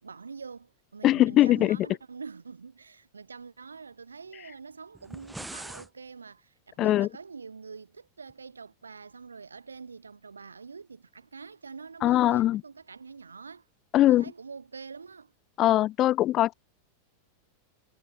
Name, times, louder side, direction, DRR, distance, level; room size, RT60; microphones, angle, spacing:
voice 1, 0.0-13.7 14.1-15.3, right 5 dB, 75° right, 4.5 m, -45 dB
voice 2, 1.0-1.8 6.8-7.1 12.0-12.6 13.9-14.2 15.6-16.5, left 14 dB, 35° left, 0.7 m, -21 dB
sound 1, 4.9-5.9, right 2 dB, 5° right, 3.4 m, -41 dB
figure-of-eight pair, 90°, 0 cm